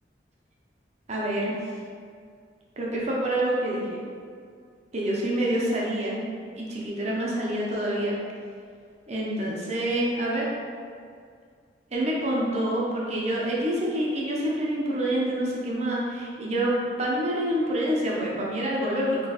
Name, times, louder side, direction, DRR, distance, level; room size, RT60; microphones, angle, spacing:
voice 1, 1.1-1.5 2.8-4.0 4.9-6.2 6.6-8.1 9.1-10.5 11.9-19.2, right 1 dB, 40° right, -4 dB, 0.6 m, -27 dB
3.8 x 3.1 x 2.9 m, 2.2 s
head